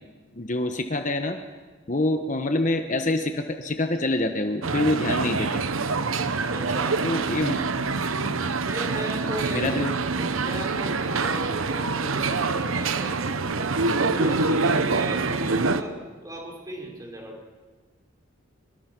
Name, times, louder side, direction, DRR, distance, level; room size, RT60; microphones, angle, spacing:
voice 1, 0.3-1.4 1.9-5.6 7.0-7.6 8.2-8.4 9.5-9.9, left 2 dB, 40° left, 6 dB, 1.2 m, -26 dB
sound 1, 4.6-15.8, right 3 dB, 85° right, 1.0 m, -25 dB
voice 2, 6.5-7.1 8.7-9.8 10.2-13.7 14.0-16.0 16.2-17.4, equal, 15° right, 0 dB, 5.3 m, -36 dB
25.5 x 24.0 x 6.1 m, 1.4 s
head